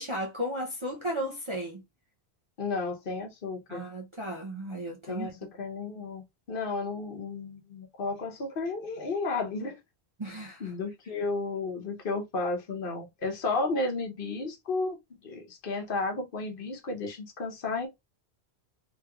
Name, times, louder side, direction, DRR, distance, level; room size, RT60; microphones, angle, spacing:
voice 1, 0.0-1.8 3.7-5.3 10.2-10.7, equal, 35° right, 0.6 m, -34 dB
voice 2, 2.6-3.8 5.1-9.8 10.6-17.9, left 3 dB, 55° left, 1.1 m, -33 dB
3.2 x 2.9 x 2.3 m
omnidirectional pair, 1.1 m